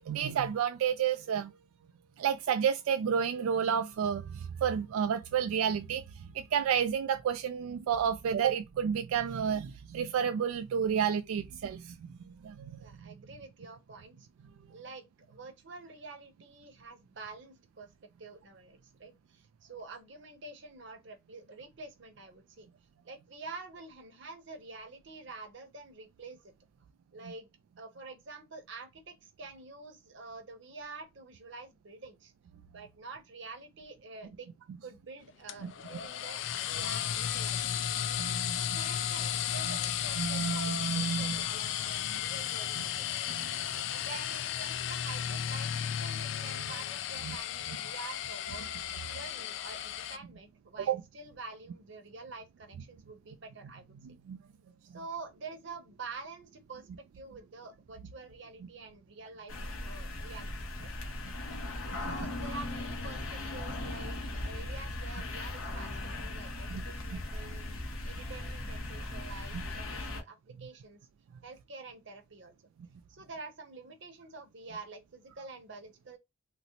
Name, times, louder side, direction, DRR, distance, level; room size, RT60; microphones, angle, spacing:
voice 1, 0.0-1.5 2.2-13.1 35.6-35.7 38.2-38.8 39.7-39.8 40.2-41.4 43.3-43.6 47.2-47.4 47.7-47.8 50.9-51.0 54.0-54.4 61.9-62.1 66.7-66.8 67.1-67.2 69.5-69.6, right 8 dB, 90° right, 0.3 m, -31 dB
voice 2, 12.8-14.3 14.7-17.9 18.2-22.7 23.0-26.5 27.1-27.5 27.8-32.3 32.7-34.5 34.8-43.2 43.9-48.7 49.1-53.9 54.8-56.9 57.1-59.5 59.8-60.5 60.8-61.2 62.0-67.7 68.0-71.0 71.4-72.6 73.1-76.2, right 3 dB, 60° right, 0.8 m, -47 dB
sound 1, 35.5-50.2, left 10 dB, 60° left, 0.3 m, -34 dB
sound 2, 59.5-70.2, left 1 dB, 80° left, 0.9 m, -38 dB
3.8 x 2.1 x 2.8 m
head